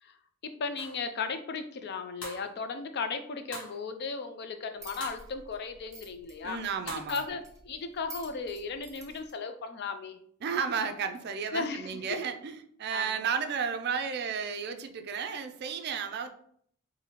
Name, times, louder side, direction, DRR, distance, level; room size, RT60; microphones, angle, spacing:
voice 1, 0.4-6.6 7.1-10.2 11.5-12.2 12.9-13.2, left 4 dB, 50° left, 8 dB, 0.4 m, -36 dB
sound 1, 0.8-1.0 2.2-2.5 3.5-3.8 5.0-5.3 6.9-7.1, equal, 80° left, 1.2 m, -41 dB
sound 2, 4.8-9.3, right 1 dB, 15° right, 0.8 m, -50 dB
voice 2, 6.4-7.2 10.4-16.3, right 6 dB, 50° right, 7 dB, 0.4 m, -33 dB
4.1 x 2.7 x 2.9 m, 0.63 s
head